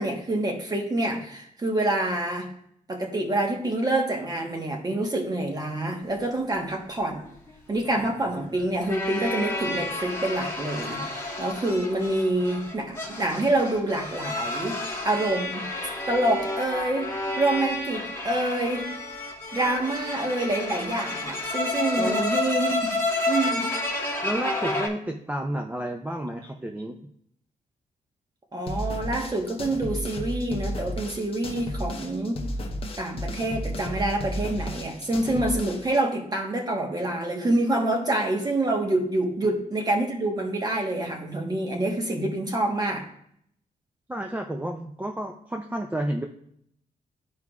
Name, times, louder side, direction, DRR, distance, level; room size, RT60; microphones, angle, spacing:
voice 1, 0.0-2.5 2.9-7.3 7.7-14.8 15.0-15.7 16.1-17.1 17.4-18.9 19.5-22.9 23.3-23.6 28.5-32.4 33.0-43.0, right 1 dB, 25° right, 2 dB, 1.2 m, -27 dB
sound 1, 7.1-24.9, left 2 dB, 15° left, 1.3 m, -30 dB
voice 2, 22.0-22.3 24.2-27.0 44.1-46.3, right 1 dB, 10° right, 3 dB, 0.4 m, -31 dB
sound 2, 28.7-36.0, equal, 40° left, 0.9 m, -33 dB
12.5 x 4.7 x 2.4 m, 0.69 s
wide cardioid pair, 130°, 15 cm